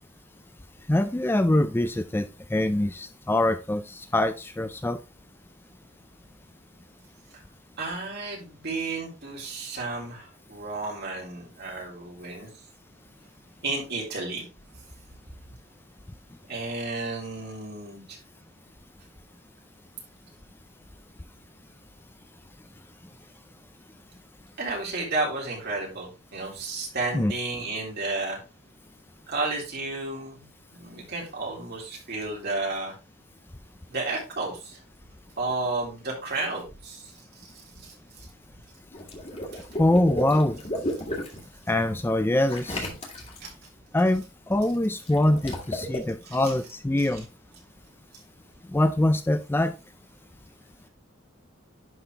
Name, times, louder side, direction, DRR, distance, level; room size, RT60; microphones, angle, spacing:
voice 1, 0.9-5.0 27.1-27.3 39.8-40.6 41.7-42.9 43.9-47.3 48.7-49.7, left 1 dB, 10° left, 10 dB, 0.3 m, -24 dB
voice 2, 7.8-12.5 13.6-14.4 16.5-18.0 24.6-28.4 29.3-30.5 30.7-32.9 33.9-34.8 35.4-37.1 37.8-38.3 43.4-43.5 46.3-46.4, right 3 dB, 50° right, -2 dB, 3.4 m, -32 dB
Water / Liquid, 38.9-41.4 42.5-43.5 45.0-46.0, left 1 dB, 30° left, 2.3 m, -33 dB
11.0 x 4.3 x 3.3 m, 0.29 s
head